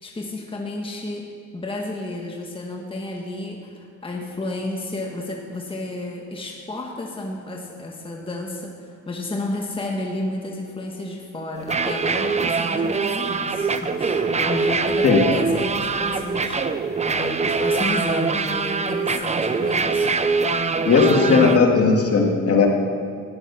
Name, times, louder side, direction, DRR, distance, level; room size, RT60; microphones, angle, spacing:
voice 1, 0.0-1.3 1.5-20.3 20.7-21.7, left 2 dB, 15° left, 0 dB, 1.5 m, -31 dB
sound 1, 11.6-21.6, right 4 dB, 25° right, 0.7 m, -23 dB
voice 2, 21.3-22.7, left 5 dB, 50° left, 0 dB, 2.3 m, -16 dB
12.5 x 10.5 x 5.8 m, 2.3 s
cardioid pair, 90°, 30 cm